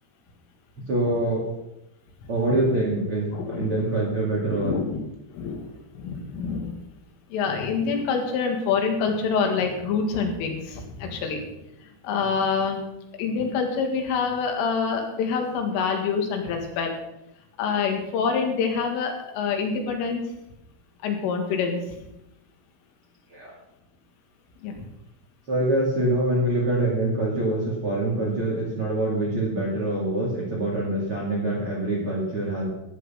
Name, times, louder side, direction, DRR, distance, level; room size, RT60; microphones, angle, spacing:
voice 1, 0.9-1.5 2.3-4.8 23.3-23.5 25.5-32.7, right 1 dB, 40° right, -3 dB, 2.2 m, -25 dB
voice 2, 3.3-3.7 4.5-5.0 5.3-6.8 7.3-12.8 13.2-16.9 17.6-20.3 21.0-22.0 24.6-24.7, left 5 dB, 80° left, 3 dB, 4.5 m, -26 dB
15.0 x 9.6 x 5.6 m, 0.88 s
omnidirectional pair, 5.7 m